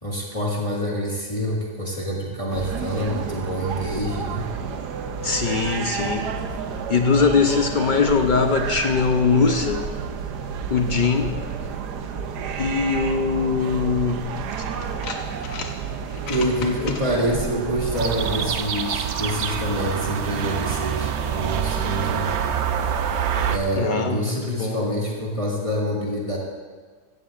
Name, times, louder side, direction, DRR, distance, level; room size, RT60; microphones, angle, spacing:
voice 1, 0.0-4.5 16.1-22.3 23.5-26.4, equal, 20° left, -4 dB, 1.9 m, -26 dB
sound 1, 2.5-18.6, right 6 dB, 80° right, 1.4 m, -30 dB
voice 2, 5.2-6.3 6.9-9.9 10.7-11.4 12.6-14.3 16.8-16.9 23.8-24.8, left 5 dB, 55° left, 5 dB, 0.5 m, -21 dB
sound 2, 14.0-14.1 14.8-15.7 16.1-17.0, left 5 dB, 80° left, 1.5 m, -35 dB
sound 3, 17.9-23.6, right 8 dB, 60° right, 0.8 m, -26 dB
15.5 x 14.5 x 2.5 m, 1.5 s
omnidirectional pair, 1.7 m